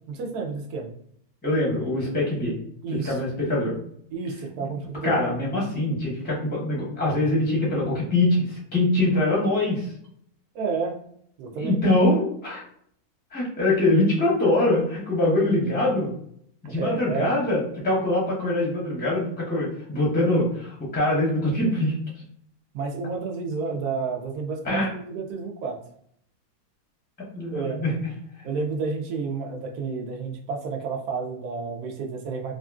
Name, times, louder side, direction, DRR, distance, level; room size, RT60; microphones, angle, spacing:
voice 1, 0.1-0.9 2.8-3.2 4.1-5.2 10.5-11.0 11.4-11.8 16.6-17.3 22.7-25.8 27.5-27.9 28.4-32.5, right 4 dB, 80° right, 3 dB, 1.1 m, -30 dB
voice 2, 1.4-2.5 2.9-3.8 5.0-9.9 11.5-12.6 13.3-16.1 16.6-21.9 24.6-24.9 27.3-27.9 28.4-28.6, left 1 dB, 10° left, -5 dB, 0.4 m, -23 dB
2.8 x 2.5 x 2.3 m, 0.67 s
omnidirectional pair, 1.6 m